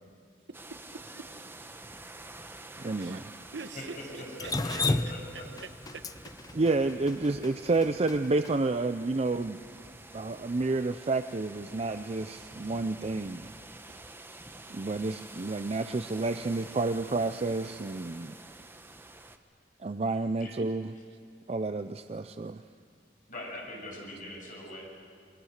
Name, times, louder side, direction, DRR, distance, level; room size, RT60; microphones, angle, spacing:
sound 1, 0.5-19.4, right 2 dB, 15° right, 1.0 m, -48 dB
voice 1, 0.5-1.3 3.0-3.3 3.5-6.3 7.2-7.3 16.4-16.5 16.9-17.0 20.2-20.3 20.6-20.7 21.1-21.2, right 4 dB, 75° right, 8 dB, 1.2 m, -46 dB
voice 2, 2.8-3.3 6.5-9.6 10.1-13.5 13.9-14.0 14.7-18.4 19.8-20.9 21.5-22.6, right 3 dB, 35° right, 9 dB, 0.5 m, -30 dB
voice 3, 3.7-5.5 20.4-20.5 23.3-24.8, left 1 dB, 50° left, -2 dB, 7.3 m, -42 dB
Drip, 4.4-8.5, left 2 dB, 20° left, 0.6 m, -32 dB
28.0 x 22.0 x 6.6 m, 2.3 s
head